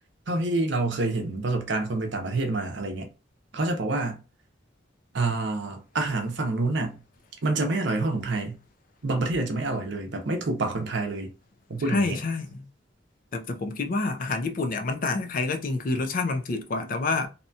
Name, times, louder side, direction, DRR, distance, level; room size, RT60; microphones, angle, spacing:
voice 1, 0.3-3.1 3.5-4.2 5.1-7.0 7.4-8.6 9.0-11.3 11.7-12.2, right 2 dB, 60° right, 0.6 m, -27 dB
voice 2, 11.9-12.7 13.3-17.3, left 3 dB, 45° left, 0.4 m, -27 dB
2.8 x 2.2 x 2.6 m
head